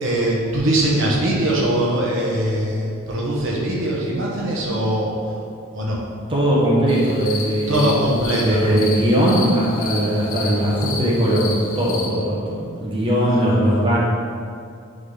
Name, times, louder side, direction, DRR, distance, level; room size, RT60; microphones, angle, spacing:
voice 1, 0.0-5.4 5.7-6.0 7.7-8.8, right 1 dB, 60° right, -4 dB, 1.2 m, -21 dB
voice 2, 6.3-8.0 8.3-14.0, equal, 25° right, -6 dB, 1.3 m, -19 dB
sound 1, 6.9-12.1, left 4 dB, 80° left, 1.2 m, -31 dB
9.9 x 3.9 x 3.9 m, 2.3 s
head